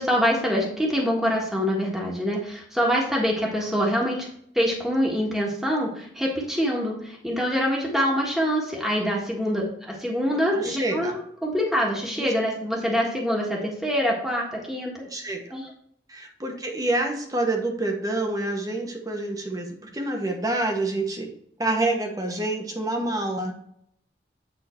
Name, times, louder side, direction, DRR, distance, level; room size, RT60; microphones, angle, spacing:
voice 1, 0.0-4.3 4.5-14.9 15.5-15.7, equal, ahead, -3 dB, 1.5 m, -25 dB
voice 2, 10.5-11.2 12.2-12.3 15.1-15.4 16.1-19.7 19.9-21.3 21.6-23.5, right 2 dB, 20° right, 2 dB, 1.3 m, -27 dB
9.2 x 3.8 x 4.5 m, 0.68 s
head